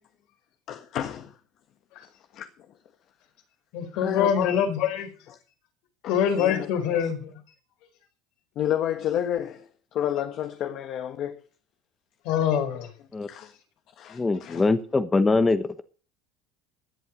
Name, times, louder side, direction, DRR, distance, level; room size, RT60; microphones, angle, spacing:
voice 1, 0.7-1.4 2.3-2.5 3.9-4.6 5.3-5.4 6.0-6.7 7.0-7.1 8.5-11.5 13.2-13.5 14.0-14.6, left 10 dB, 45° left, 1.5 m, -30 dB
voice 2, 3.7-5.1 6.1-7.3 12.2-12.9, left 8 dB, 65° left, 4.3 m, -24 dB
voice 3, 14.1-15.8, left 3 dB, 15° left, 1.1 m, -23 dB
17.0 x 10.5 x 5.2 m
cardioid pair, 140°, 0 cm